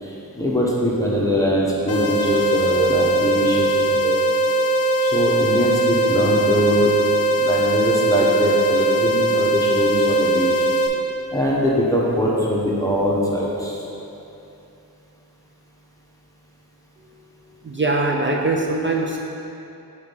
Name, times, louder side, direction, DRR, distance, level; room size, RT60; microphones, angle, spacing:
voice 1, 0.0-4.2 5.0-6.9 7.4-10.5 11.3-13.8, equal, 10° left, -6 dB, 1.0 m, -22 dB
sound 1, 1.9-10.9, right 1 dB, 40° left, 0.9 m, -20 dB
voice 2, 17.6-19.2, right 2 dB, 30° right, 0 dB, 0.5 m, -22 dB
4.8 x 4.1 x 5.4 m, 2.8 s
wide cardioid pair, 55°, 37 cm